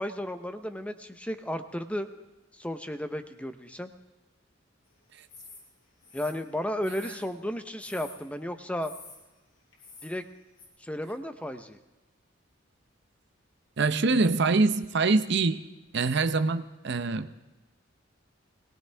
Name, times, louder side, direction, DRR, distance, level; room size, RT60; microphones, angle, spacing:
voice 1, 0.0-2.1 2.5-3.9 6.1-8.9 10.0-10.2 10.8-11.8, left 1 dB, 5° left, 8 dB, 0.8 m, -34 dB
sound 1, 5.3-5.6 6.0-7.3 7.8-8.2 8.8-9.2 9.7-10.1 10.6-10.7, left 4 dB, 80° left, 7.0 m, -48 dB
voice 2, 13.8-15.7 15.9-17.4, right 3 dB, 60° right, 11 dB, 0.7 m, -24 dB
21.5 x 18.5 x 3.5 m, 1.1 s
head